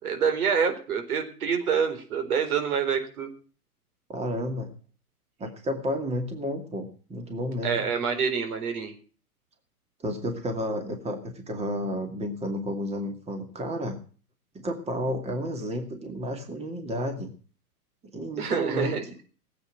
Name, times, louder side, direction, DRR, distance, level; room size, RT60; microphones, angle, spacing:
voice 1, 0.0-3.3 7.6-8.9 18.4-19.0, right 6 dB, 70° right, 6 dB, 4.4 m, -26 dB
voice 2, 4.1-4.7 5.4-7.9 10.0-14.0 14.5-17.3 18.1-18.9, equal, 15° right, 5 dB, 2.3 m, -31 dB
17.5 x 8.7 x 6.2 m, 0.40 s
hypercardioid pair, 120°, 46 cm